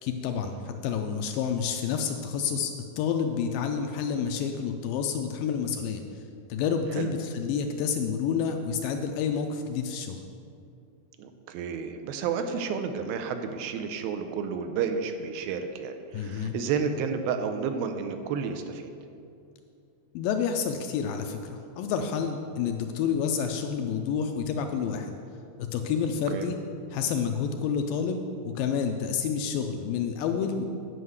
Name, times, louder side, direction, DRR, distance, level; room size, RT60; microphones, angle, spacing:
voice 1, 0.0-6.0 6.5-10.2 16.1-16.6 20.1-25.1 25.6-26.6 26.9-30.6, left 6 dB, 80° left, 5 dB, 2.1 m, -29 dB
voice 2, 11.2-18.9 26.3-26.5, right 6 dB, 80° right, 7 dB, 2.3 m, -31 dB
9.6 x 5.5 x 7.8 m, 2.5 s
omnidirectional pair, 4.4 m